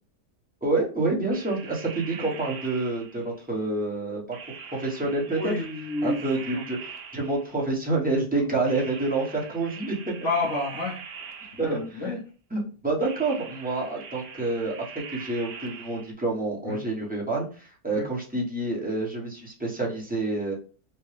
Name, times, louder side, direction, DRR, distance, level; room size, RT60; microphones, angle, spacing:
voice 1, 0.6-4.4 4.7-5.5 6.0-10.3 11.6-12.2 12.5-20.5, right 2 dB, 5° right, -4 dB, 0.9 m, -28 dB
sound 1, 1.3-3.4 4.3-7.7 8.7-12.0 13.0-16.1, right 6 dB, 70° right, 1.1 m, -43 dB
voice 2, 5.4-6.2 6.5-6.6 8.4-8.5 10.2-11.0 11.6-12.1 16.7-16.8 17.9-18.1, left 2 dB, 55° left, -3 dB, 1.1 m, -29 dB
4.4 x 2.2 x 3.2 m, 0.38 s
omnidirectional pair, 1.6 m